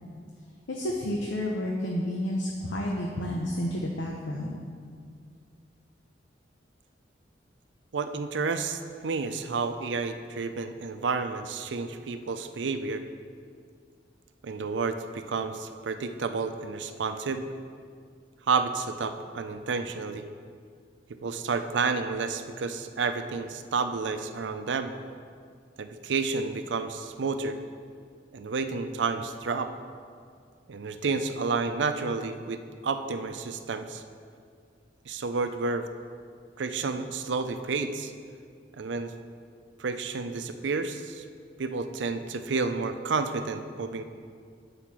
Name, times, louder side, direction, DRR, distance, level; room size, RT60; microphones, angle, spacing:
voice 1, 0.7-4.6, left 1 dB, 85° left, 0 dB, 0.8 m, -30 dB
voice 2, 7.9-13.0 14.4-17.4 18.5-20.3 21.2-24.9 25.8-27.6 28.3-29.7 30.7-32.6 32.8-34.0 35.1-35.9 36.6-38.1 38.8-39.1 39.8-41.2 41.6-44.0, right 4 dB, 80° right, 9 dB, 0.5 m, -30 dB
8.4 x 5.0 x 6.0 m, 2.2 s
head